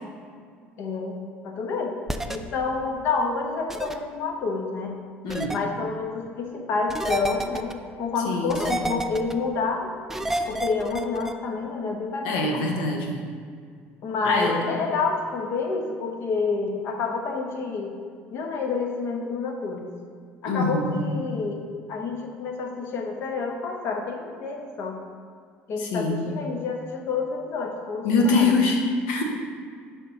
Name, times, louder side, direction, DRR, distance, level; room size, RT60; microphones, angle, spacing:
voice 1, 0.8-1.2 1.4-2.0 2.3-5.0 5.5-9.9 10.5-12.7 14.0-17.9 18.3-19.9 20.4-25.0 25.7-28.6, left 4 dB, 60° left, 3 dB, 1.0 m, -29 dB
sound 1, 2.1-2.4 3.7-3.9 5.3-5.6 6.9-7.7 8.5-9.3 10.1-11.3, right 1 dB, 5° right, 0.4 m, -29 dB
voice 2, 5.2-5.6 8.2-8.9 12.2-13.2 14.2-14.6 20.4-20.9 25.8-26.2 28.0-28.8 29.1-29.2, left 3 dB, 90° left, 1 dB, 1.0 m, -24 dB
6.6 x 3.8 x 5.7 m, 2.1 s
supercardioid pair, 100°, 5 cm